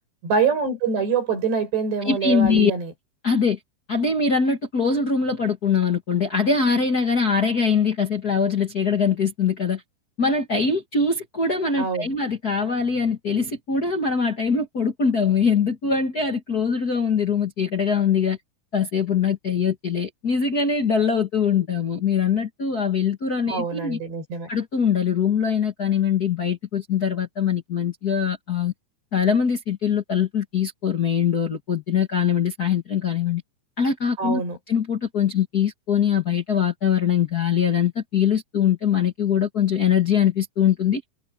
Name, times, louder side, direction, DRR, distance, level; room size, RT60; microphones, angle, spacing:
voice 1, 0.2-2.9 11.8-12.1 23.5-24.5 34.2-34.6, right 5 dB, 75° right, 10.0 m, -25 dB
voice 2, 2.0-2.7 3.2-3.6 3.9-9.8 10.2-18.4 18.7-24.0 24.5-28.7 29.1-33.4 33.8-34.4 34.7-41.0, left 6 dB, 65° left, 0.9 m, -22 dB
omnidirectional pair, 4.9 m